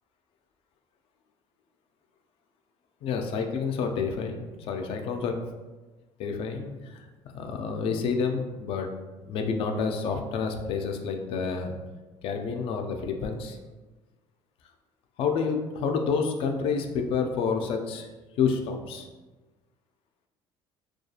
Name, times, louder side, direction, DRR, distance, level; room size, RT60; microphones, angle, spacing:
voice 1, 3.0-5.4 6.2-7.1 7.3-8.9 9.2-11.7 12.2-13.6 15.2-18.1 18.4-19.1, left 5 dB, 60° left, 4 dB, 0.4 m, -29 dB
2.3 x 2.3 x 2.7 m, 1.2 s
cardioid pair, 130°, 11 cm